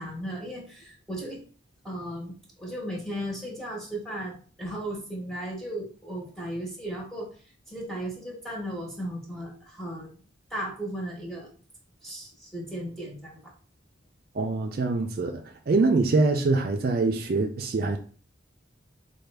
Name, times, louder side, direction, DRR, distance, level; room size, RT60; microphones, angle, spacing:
voice 1, 0.0-1.4 1.8-7.3 7.7-10.1 10.5-11.5 12.0-13.4, right 1 dB, ahead, 0.9 m, -36 dB
voice 2, 14.4-18.0, right 3 dB, 50° right, 0.4 m, -24 dB
4.5 x 2.2 x 3.3 m
head